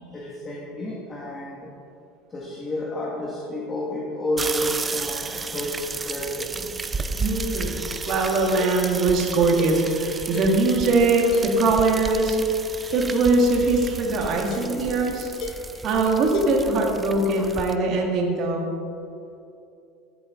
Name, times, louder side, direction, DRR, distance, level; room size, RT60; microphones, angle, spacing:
voice 1, 0.0-1.7 2.3-6.7, left 1 dB, 20° left, -4 dB, 1.8 m, -30 dB
sound 1, 4.4-17.7, right 4 dB, 20° right, 0.5 m, -33 dB
voice 2, 7.2-12.4 12.9-15.3 15.8-18.7, right 2 dB, 50° right, 1 dB, 2.0 m, -21 dB
sound 2, 8.1-12.4 12.9-16.4, left 3 dB, 50° left, 1.0 m, -39 dB
14.0 x 8.4 x 3.8 m, 2.6 s
supercardioid pair, 125°, 0 cm